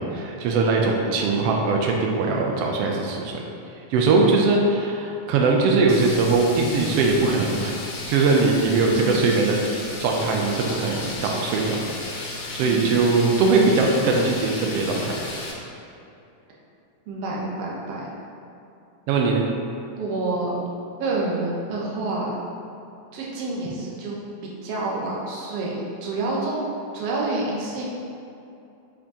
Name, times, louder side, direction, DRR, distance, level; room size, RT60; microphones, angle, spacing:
voice 1, 0.0-3.4 3.9-7.7 8.1-9.6 10.0-11.8 12.1-15.2 19.1-19.4, right 3 dB, 85° right, 0 dB, 1.4 m, -21 dB
sound 1, 5.9-15.5, left 2 dB, 70° left, 1.9 m, -34 dB
voice 2, 8.8-9.2 12.6-13.0 17.1-18.1 19.9-20.6 21.0-22.4 23.1-24.2 24.4-25.7 26.0-26.6 26.9-27.9, right 2 dB, 65° right, -4 dB, 1.8 m, -28 dB
6.9 x 5.1 x 2.8 m, 2.7 s
omnidirectional pair, 3.4 m